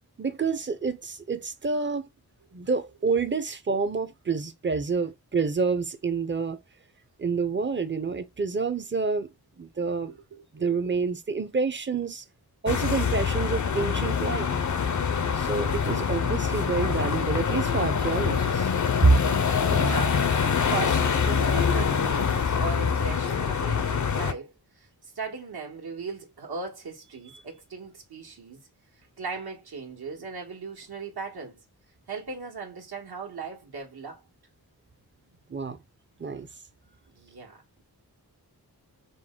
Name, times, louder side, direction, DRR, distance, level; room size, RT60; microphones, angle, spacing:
voice 1, 0.2-2.1 2.5-6.6 7.2-9.3 9.6-10.1 10.5-12.2 12.6-14.5 15.4-18.7 19.0-19.2 35.5-35.8 36.2-36.5, right 4 dB, 30° right, 0.7 m, -27 dB
voice 2, 10.1-10.7 19.7-28.6 29.2-31.6 32.1-34.2 37.1-37.8, right 4 dB, 70° right, 1.6 m, -38 dB
sound 1, 12.7-24.3, left 6 dB, 50° left, 0.6 m, -25 dB
5.2 x 2.2 x 3.7 m
wide cardioid pair, 95°, 39 cm